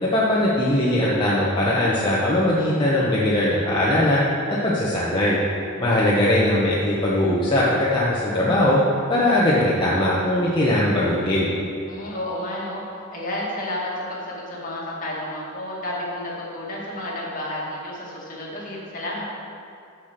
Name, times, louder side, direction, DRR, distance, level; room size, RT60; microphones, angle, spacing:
voice 1, 0.0-4.2 4.6-5.4 5.8-8.8 9.1-11.5, left 1 dB, 20° left, -8 dB, 1.0 m, -20 dB
voice 2, 5.9-6.2 11.9-12.8 13.1-19.2, left 1 dB, 40° left, -5 dB, 2.0 m, -31 dB
7.1 x 6.0 x 6.7 m, 2.4 s
head